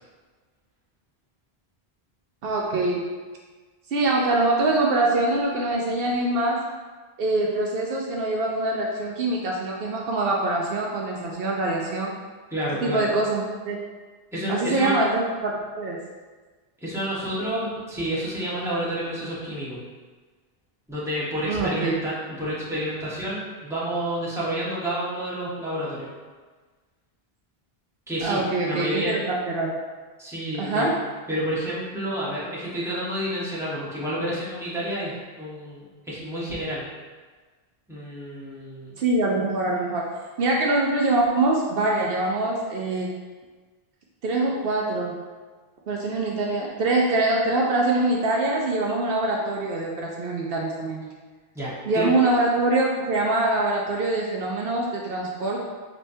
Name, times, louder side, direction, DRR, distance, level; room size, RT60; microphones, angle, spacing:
voice 1, 2.4-3.0 3.9-6.6 7.2-12.1 12.8-13.8 14.5-16.0 21.5-21.9 28.2-29.7 30.6-30.9 39.0-40.1 40.4-43.1 44.2-45.1 45.9-51.1 51.9-55.6, right 2 dB, 70° right, -2 dB, 0.8 m, -24 dB
voice 2, 12.5-13.1 14.3-15.0 16.8-19.8 20.9-22.1 22.4-26.1 28.1-29.1 30.2-30.9 31.3-36.8 37.9-39.0 51.5-52.1, equal, 5° right, -9 dB, 1.2 m, -29 dB
5.2 x 3.3 x 2.7 m, 1.4 s
omnidirectional pair, 1.0 m